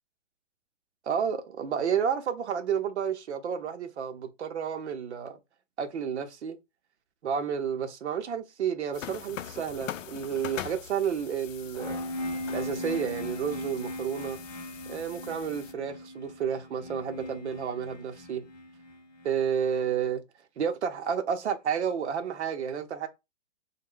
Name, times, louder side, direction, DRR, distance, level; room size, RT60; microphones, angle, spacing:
voice 1, 1.1-5.4 5.8-6.6 7.2-12.0 12.5-14.4 14.9-18.4 19.2-20.2 20.6-23.1, right 7 dB, 65° right, 0.6 m, -31 dB
sound 1, 8.9-15.7, left 10 dB, 90° left, 0.5 m, -43 dB
sound 2, 11.8-19.6, left 1 dB, 35° left, 0.5 m, -38 dB
3.3 x 2.1 x 3.5 m
hypercardioid pair, 175°, 37 cm